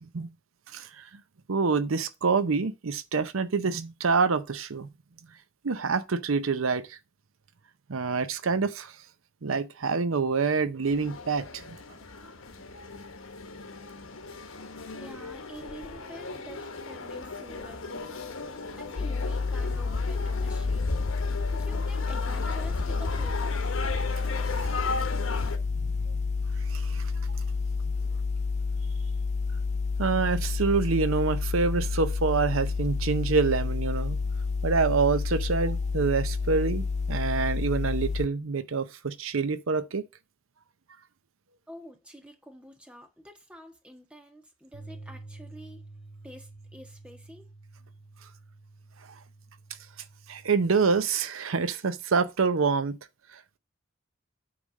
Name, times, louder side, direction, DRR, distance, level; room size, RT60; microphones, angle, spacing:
voice 1, 0.7-1.1 1.5-4.9 5.6-7.0 7.9-9.0 9.4-11.8 24.5-24.7 25.0-25.1 25.7-26.1 26.7-27.1 30.0-34.2 34.6-40.0 50.3-52.9 53.3-53.6, right 4 dB, 80° right, 0.7 m, -27 dB
sound 1, 10.8-25.6, left 3 dB, 75° left, 1.2 m, -36 dB
voice 2, 14.9-18.1 18.7-20.8 21.3-23.8 41.7-45.9 46.2-47.5, equal, 5° right, 1.5 m, -48 dB
sound 2, 19.0-38.3, left 4 dB, 35° left, 0.4 m, -29 dB
sound 3, 44.7-51.0, right 2 dB, 60° right, 1.9 m, -49 dB
8.5 x 3.4 x 6.4 m
head